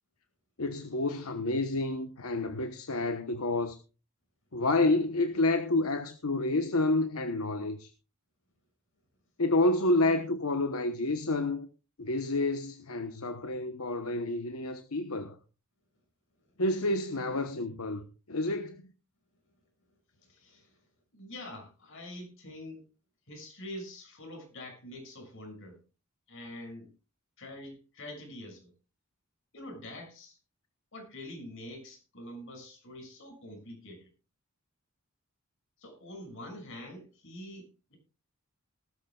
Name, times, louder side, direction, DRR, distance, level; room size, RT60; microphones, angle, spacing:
voice 1, 0.6-3.8 4.5-7.9 9.4-11.7 12.0-15.4 16.6-18.9, left 2 dB, 80° left, 1.1 m, -29 dB
voice 2, 20.2-20.7 21.1-22.8 23.3-25.8 26.3-26.9 27.4-28.7 29.5-30.4 30.9-34.1 35.8-38.0, left 1 dB, 65° left, 6.5 m, -45 dB
19.0 x 13.0 x 2.4 m
head